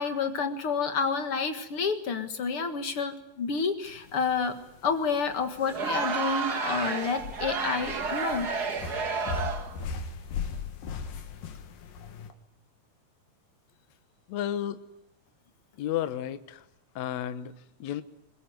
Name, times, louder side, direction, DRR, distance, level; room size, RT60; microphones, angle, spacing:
voice 1, 0.0-8.5, left 5 dB, 50° left, 8 dB, 2.1 m, -29 dB
sound 1, 3.9-12.3, left 5 dB, 90° left, 3.6 m, -39 dB
Crowd, 5.6-9.8, right 4 dB, 40° right, 1.7 m, -31 dB
voice 2, 14.3-14.8 15.8-16.6 17.0-18.0, left 11 dB, 65° left, 11 dB, 2.1 m, -32 dB
22.5 x 21.0 x 9.4 m, 0.80 s
omnidirectional pair, 3.9 m